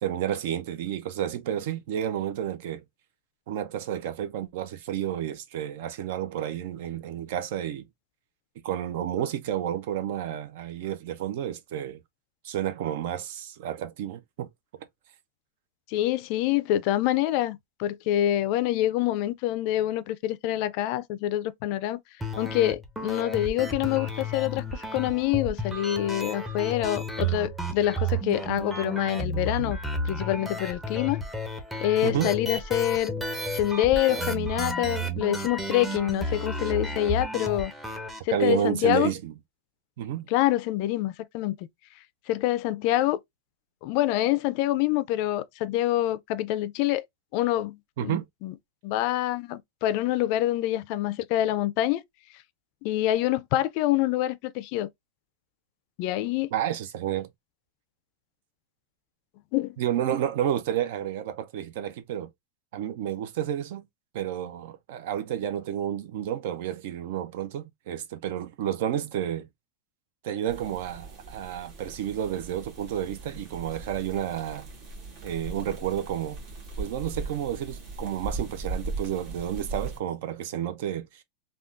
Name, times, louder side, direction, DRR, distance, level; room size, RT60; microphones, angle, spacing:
voice 1, 0.0-2.8 3.5-7.9 8.6-12.0 12.4-14.9 32.0-32.3 38.3-39.3 40.0-40.3 48.0-48.3 56.5-57.3 59.8-62.3 62.7-63.9 64.1-69.5 70.2-74.7 75.2-76.4 76.8-81.2, right 10 dB, 65° right, 0.5 m, -30 dB
voice 2, 15.9-22.0 22.4-29.8 30.0-31.2 31.8-33.1 33.5-37.7 38.2-39.1 40.3-41.5 42.3-43.2 43.8-47.0 47.3-48.5 48.8-52.0 52.8-54.9 56.0-56.5 59.5-59.8, left 14 dB, 50° left, 0.3 m, -26 dB
sound 1, 22.2-38.2, right 1 dB, 5° right, 0.6 m, -32 dB
sound 2, 70.5-80.0, right 3 dB, 45° right, 1.2 m, -38 dB
3.5 x 2.3 x 2.5 m
supercardioid pair, 145°, 0 cm